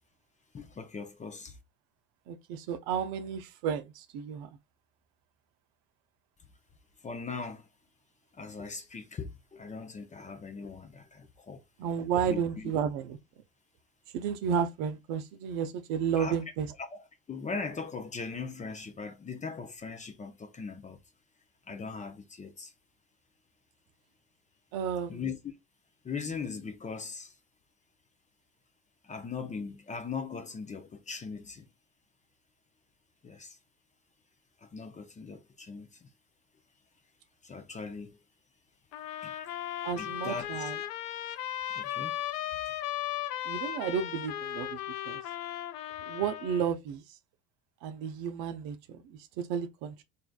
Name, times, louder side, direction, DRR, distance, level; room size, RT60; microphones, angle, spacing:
voice 1, 0.5-1.6 7.0-7.7 8.3-11.6 12.3-12.7 16.2-16.4 16.9-17.0 17.3-21.0 21.7-22.7 25.1-25.5 26.0-27.3 29.0-31.6 33.2-33.6 34.6-36.1 37.4-38.2 39.2-39.3 40.0-40.7 41.7-42.2 42.7-42.8, left 5 dB, 15° left, 0.5 m, -40 dB
voice 2, 2.3-4.5 11.8-13.2 14.1-16.7 24.7-25.2 39.8-40.8 43.4-45.2 46.1-47.0 47.8-50.0, right 7 dB, 60° right, 0.6 m, -32 dB
sound 1, 38.9-46.7, left 12 dB, 80° left, 0.6 m, -36 dB
3.2 x 2.6 x 2.3 m
hypercardioid pair, 85°, 45 cm